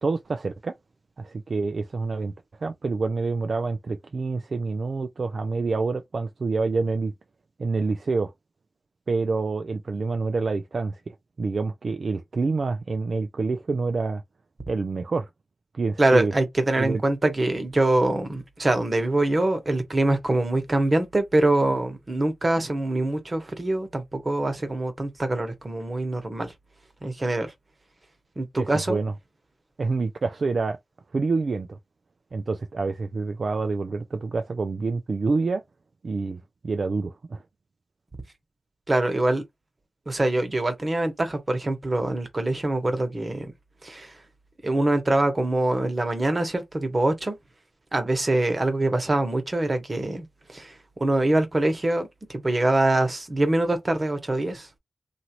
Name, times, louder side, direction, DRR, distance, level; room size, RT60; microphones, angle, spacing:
voice 1, 0.0-0.8 1.2-2.3 2.6-7.1 7.6-8.3 9.1-14.2 14.7-15.3 15.7-16.3 16.8-17.0 28.5-29.1 29.8-30.8 31.1-31.7 32.3-35.6 36.0-37.4, right 4 dB, 65° right, 0.4 m, -27 dB
voice 2, 16.0-26.5 27.0-27.5 28.4-29.0 38.9-39.4 40.1-43.5 43.8-44.1 44.6-47.3 47.9-50.7 51.0-54.7, right 2 dB, 40° right, 1.1 m, -24 dB
2.8 x 2.5 x 2.9 m
cardioid pair, 40°, 0 cm